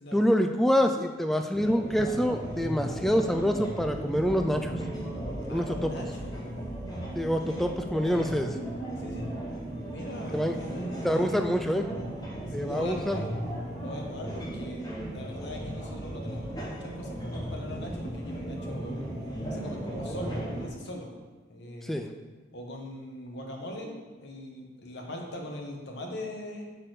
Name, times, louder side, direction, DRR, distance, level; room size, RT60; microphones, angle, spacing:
voice 1, 0.1-4.7 5.5-6.0 7.1-8.6 10.3-10.5 11.0-11.9 12.5-13.2 21.8-22.1, equal, ahead, 5 dB, 0.3 m, -26 dB
sound 1, 1.5-20.7, right 1 dB, 20° left, 1.1 m, -36 dB
voice 2, 5.5-6.4 9.0-9.3 9.9-12.1 12.5-13.3 13.8-14.9 15.1-18.9 19.5-21.1 21.5-22.1 22.5-26.7, left 1 dB, 60° left, 0 dB, 1.2 m, -41 dB
6.5 x 4.1 x 6.5 m, 1.3 s
head